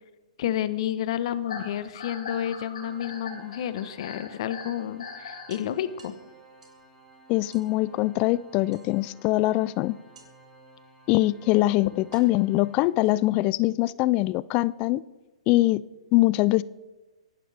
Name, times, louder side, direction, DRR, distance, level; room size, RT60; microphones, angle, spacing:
voice 1, 0.4-6.1, left 11 dB, 55° left, 13 dB, 1.0 m, -30 dB
sound 1, 1.4-5.5, left 4 dB, 80° left, 5.4 m, -40 dB
sound 2, 1.5-2.5 4.0-4.1 4.5-4.6 4.9-5.0 5.5-6.9 7.5-7.8 8.7-9.3 10.1-10.6 11.4-11.5 12.1-13.5, right 4 dB, 80° right, 2.9 m, -55 dB
Organ, 2.7-13.5, right 2 dB, ahead, 3.3 m, -55 dB
voice 2, 7.3-9.9 11.1-15.0 15.5-15.8 16.1-16.6, left 18 dB, 30° left, 20 dB, 0.4 m, -23 dB
23.5 x 11.5 x 3.4 m, 1.2 s
hypercardioid pair, 140°, 4 cm